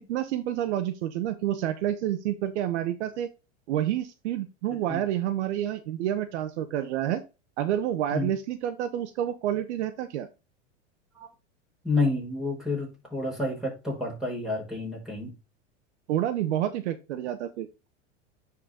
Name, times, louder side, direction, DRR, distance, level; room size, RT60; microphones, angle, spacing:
voice 1, 0.0-3.3 3.7-7.2 7.6-10.3 16.1-17.9, right 11 dB, 70° right, 1.2 m, -29 dB
voice 2, 11.8-15.3, left 2 dB, ahead, 5.3 m, -29 dB
10.0 x 4.5 x 3.7 m
hypercardioid pair, 110°, 36 cm